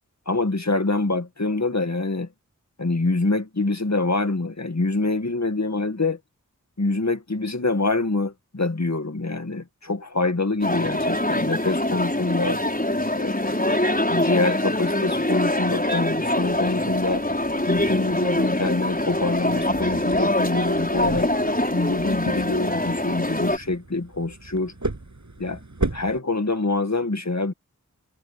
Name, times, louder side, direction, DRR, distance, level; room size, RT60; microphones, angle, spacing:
voice 1, 0.3-2.3 2.8-6.2 6.8-12.6 13.2-17.3 17.7-21.3 21.7-24.7 25.4-25.6 25.9-27.5, left 3 dB, 55° left, 2.1 m, -25 dB
sound 1, 10.6-23.6, left 1 dB, 25° left, 6.1 m, -24 dB
sound 2, 16.4-26.2, right 2 dB, 65° right, 7.3 m, -36 dB
wide cardioid pair, 45°, 32 cm